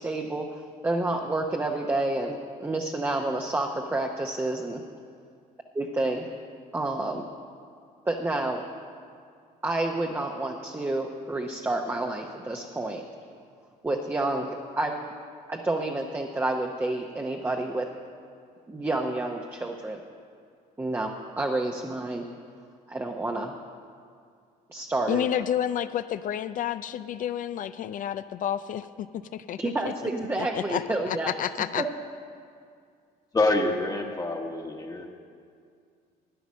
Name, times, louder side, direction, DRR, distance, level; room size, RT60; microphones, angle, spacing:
voice 1, 0.0-4.8 5.7-6.3 6.7-7.2 8.1-8.6 9.6-13.0 13.8-15.1 15.5-17.9 18.7-20.0 20.8-22.2 22.9-23.5 24.7-25.3 29.6-31.3 31.8-31.9, right 2 dB, 15° right, 1 dB, 0.8 m, -29 dB
voice 2, 25.1-29.9 30.4-31.8, left 10 dB, 50° left, 12 dB, 0.4 m, -30 dB
voice 3, 33.3-35.1, left 2 dB, 20° left, 2 dB, 1.2 m, -26 dB
12.5 x 9.3 x 6.2 m, 2.2 s
cardioid pair, 110°, 17 cm